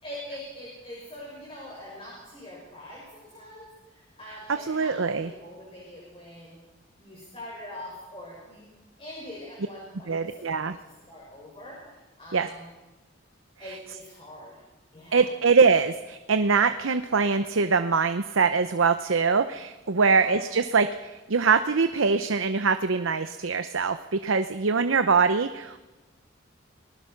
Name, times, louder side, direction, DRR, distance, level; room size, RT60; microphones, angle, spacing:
voice 1, 0.0-6.6 7.0-8.7 9.0-12.7 13.6-14.5 14.9-15.3 19.9-20.4, left 1 dB, 30° left, -4 dB, 6.6 m, -43 dB
voice 2, 4.6-5.3 10.1-10.8 12.3-12.5 13.6-13.8 15.1-25.8, right 5 dB, 85° right, 9 dB, 0.8 m, -23 dB
28.5 x 19.5 x 5.9 m, 1.2 s
head